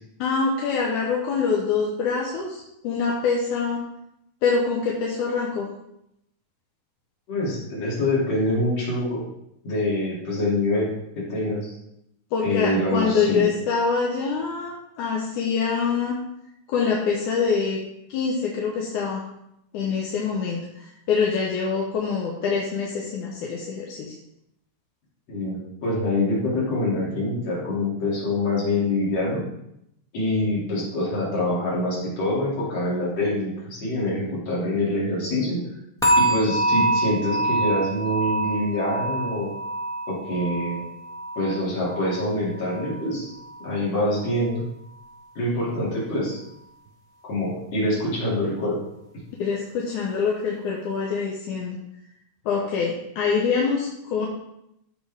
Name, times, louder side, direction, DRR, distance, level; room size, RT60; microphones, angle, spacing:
voice 1, 0.2-3.8 4.4-5.7 12.3-16.2 16.7-17.8 18.1-19.3 19.7-24.1 49.4-51.8 52.5-54.3, left 5 dB, 80° left, -2 dB, 2.4 m, -25 dB
voice 2, 7.3-9.2 9.6-10.9 11.2-11.7 12.4-13.5 25.3-29.4 30.1-35.6 36.2-39.5 40.1-40.8 41.4-43.3 43.6-44.6 45.4-46.4 47.2-48.8, left 1 dB, 55° left, -6 dB, 3.9 m, -25 dB
sound 1, 36.0-43.1 43.4-43.8 44.3-44.4, right 1 dB, 5° left, 0.3 m, -26 dB
14.5 x 4.9 x 3.5 m, 0.80 s
omnidirectional pair, 3.5 m